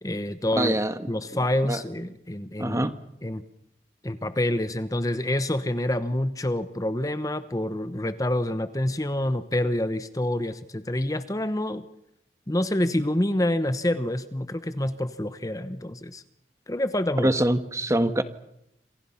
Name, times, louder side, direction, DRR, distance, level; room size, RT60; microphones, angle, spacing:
voice 1, 0.0-0.8 1.1-2.9 3.2-3.4 4.0-11.8 12.5-16.2 16.7-17.3, left 1 dB, 20° left, 12 dB, 1.0 m, -27 dB
voice 2, 0.6-0.9 1.7-1.8 2.6-2.9 17.2-18.2, right 1 dB, 15° right, 11 dB, 1.3 m, -23 dB
28.0 x 27.0 x 5.8 m, 0.79 s
head